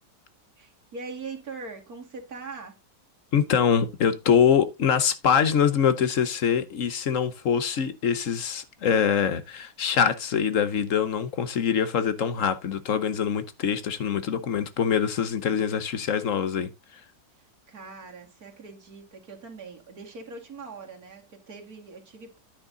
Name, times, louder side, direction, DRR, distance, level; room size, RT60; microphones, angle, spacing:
voice 1, 0.6-2.8 17.4-22.4, right 4 dB, 55° right, 2.7 m, -42 dB
voice 2, 3.3-16.7, left 7 dB, 55° left, 1.1 m, -24 dB
9.9 x 6.5 x 3.9 m
omnidirectional pair, 1.8 m